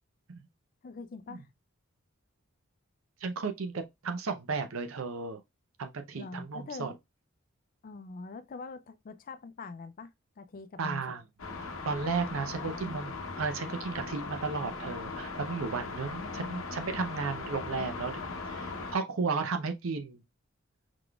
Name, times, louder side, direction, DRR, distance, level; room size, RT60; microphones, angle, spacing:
voice 1, 0.8-1.5 6.2-6.9 7.8-11.2 12.5-12.8 16.2-16.6, left 4 dB, 45° left, 0.4 m, -44 dB
voice 2, 3.2-5.4 5.8-6.9 10.8-11.2 11.8-18.1 18.5-20.2, right 4 dB, 80° right, 0.6 m, -34 dB
sound 1, 11.4-19.0, left 3 dB, 75° left, 0.8 m, -39 dB
4.8 x 3.9 x 2.3 m
head